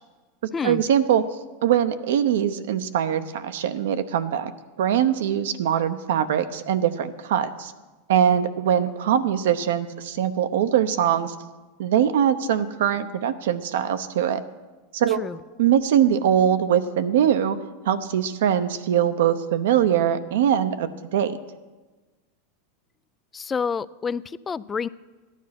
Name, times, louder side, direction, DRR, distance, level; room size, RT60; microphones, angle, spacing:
voice 1, 0.6-1.2 1.6-4.5 4.8-7.7 8.1-11.3 11.8-14.4 14.9-15.2 15.6-17.6 17.8-21.4, right 9 dB, 75° right, 10 dB, 0.9 m, -22 dB
voice 2, 23.3-24.9, left 6 dB, 20° left, 18 dB, 0.4 m, -28 dB
14.0 x 10.0 x 6.0 m, 1.3 s
hypercardioid pair, 105°, 0 cm